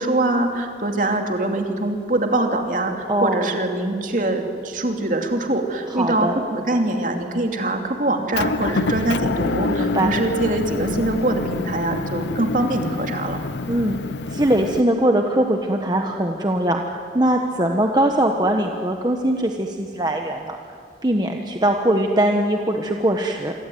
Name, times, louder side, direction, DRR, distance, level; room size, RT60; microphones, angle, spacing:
voice 1, 0.0-13.4, right 2 dB, 45° right, 3 dB, 2.8 m, -23 dB
voice 2, 3.1-3.5 5.9-6.3 9.8-10.1 13.7-14.0 14.3-20.6 21.0-23.5, right 1 dB, 25° right, 3 dB, 1.2 m, -21 dB
Motor vehicle (road) / Engine, 8.3-14.8, left 3 dB, 80° left, 0.6 m, -27 dB
27.0 x 23.0 x 9.3 m, 2.4 s
head